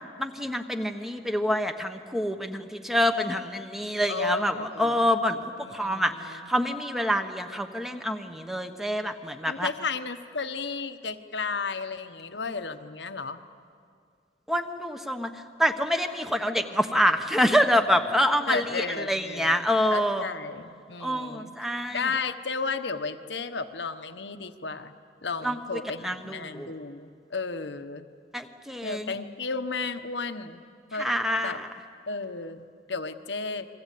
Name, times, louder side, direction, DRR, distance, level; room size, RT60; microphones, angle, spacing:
voice 1, 0.2-9.7 14.5-20.3 21.0-22.1 25.4-26.7 28.3-29.1 31.0-31.7, equal, ahead, 7 dB, 1.2 m, -27 dB
voice 2, 4.1-5.0 5.6-6.5 9.5-13.4 18.5-21.5 21.9-24.9 25.2-28.1 28.8-30.6 30.9-31.1 31.4-31.6 32.1-33.7, left 4 dB, 75° left, 8 dB, 1.2 m, -33 dB
29.5 x 22.5 x 8.5 m, 2.3 s
head